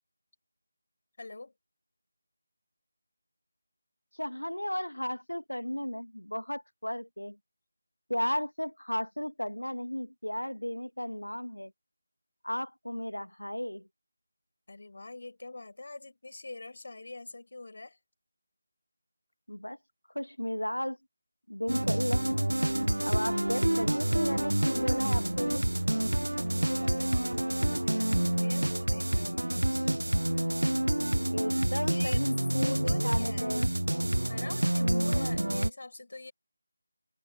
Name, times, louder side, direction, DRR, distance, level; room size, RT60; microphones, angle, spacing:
voice 1, 1.2-1.5 14.7-18.0 26.5-30.0 31.8-32.3 32.5-33.6 34.2-36.3, left 2 dB, 50° left, 7.1 m, -44 dB
voice 2, 4.2-7.4 8.1-11.7 12.4-13.9 19.5-19.8 20.2-21.0 21.5-22.5 23.0-25.7 31.3-33.7 34.8-35.3, left 1 dB, 80° left, 1.9 m, -34 dB
sound 1, 21.7-35.7, right 1 dB, 75° right, 0.5 m, -28 dB
sound 2, 22.3-27.7, right 9 dB, 20° right, 5.6 m, -55 dB
figure-of-eight pair, 160°, 0 cm